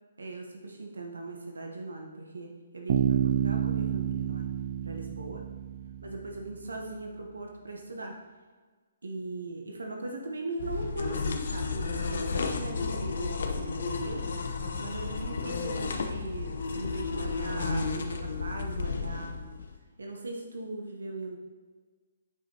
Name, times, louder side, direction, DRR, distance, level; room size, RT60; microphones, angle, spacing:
voice 1, 0.2-4.5 4.8-5.4 6.0-8.2 9.0-19.4 20.0-21.4, right 2 dB, 90° right, 1 dB, 1.0 m, -39 dB
Bass guitar, 2.9-6.6, right 9 dB, 50° right, 0.5 m, -29 dB
sound 1, 10.6-19.8, left 4 dB, 70° left, 0.8 m, -33 dB
9.6 x 5.1 x 2.9 m, 1.5 s
hypercardioid pair, 145°, 0 cm